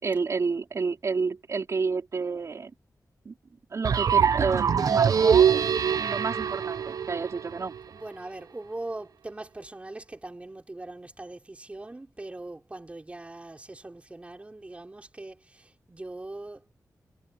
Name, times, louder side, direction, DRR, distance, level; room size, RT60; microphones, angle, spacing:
voice 1, 0.0-2.7 3.2-3.3 3.7-5.5 6.0-7.7, right 4 dB, 50° right, 4.4 m, -30 dB
sound 1, 3.8-7.8, right 7 dB, 65° right, 0.8 m, -23 dB
voice 2, 4.8-5.7 7.9-16.7, right 2 dB, 20° right, 4.5 m, -41 dB
wide cardioid pair, 155°, 7 cm